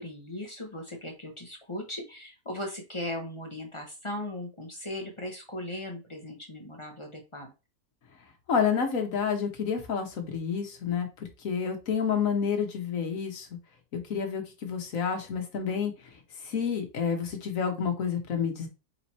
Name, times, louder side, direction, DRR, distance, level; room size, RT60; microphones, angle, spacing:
voice 1, 0.0-7.5, left 1 dB, 25° left, 2 dB, 0.8 m, -38 dB
voice 2, 8.5-11.1 11.4-13.5 13.9-15.9 16.4-18.7, left 6 dB, 60° left, 4 dB, 1.4 m, -29 dB
4.0 x 3.0 x 4.1 m, 0.29 s
omnidirectional pair, 1.6 m